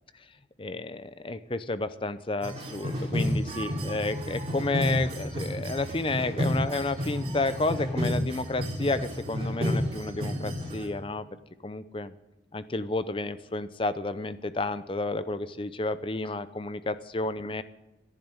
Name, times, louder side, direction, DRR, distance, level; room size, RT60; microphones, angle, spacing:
voice 1, 0.6-11.3 11.6-12.1 12.5-17.6, left 2 dB, 30° left, 13 dB, 0.6 m, -31 dB
sound 1, 2.4-10.9, equal, 35° right, 3.2 m, -31 dB
12.0 x 10.5 x 9.0 m, 0.98 s
head